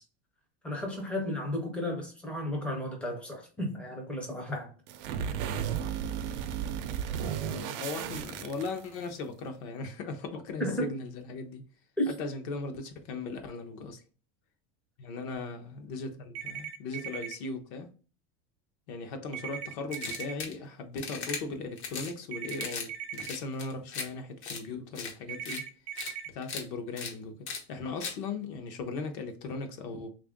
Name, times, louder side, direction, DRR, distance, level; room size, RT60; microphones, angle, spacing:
voice 1, 0.6-4.7 10.6-10.9 12.0-12.1, equal, 5° left, 0.4 m, -33 dB
sound 1, 4.9-9.1, right 8 dB, 55° right, 0.4 m, -34 dB
voice 2, 7.5-11.7 12.1-14.0 15.0-17.9 18.9-25.7 26.3-30.1, left 3 dB, 50° left, 0.7 m, -38 dB
sound 2, 16.4-17.4 19.3-20.3 22.3-23.3 25.3-26.3, right 8 dB, 90° right, 0.7 m, -39 dB
sound 3, 19.9-20.5 21.0-21.4 21.8-22.1 22.5-22.9 23.1-24.0 24.4-24.6 24.9-25.1 25.4-25.6 25.9-26.1 26.4-26.6 27.0-27.1 27.5-27.6 28.0-28.1, left 5 dB, 80° left, 1.1 m, -37 dB
3.4 x 2.5 x 3.5 m
supercardioid pair, 170°, 33 cm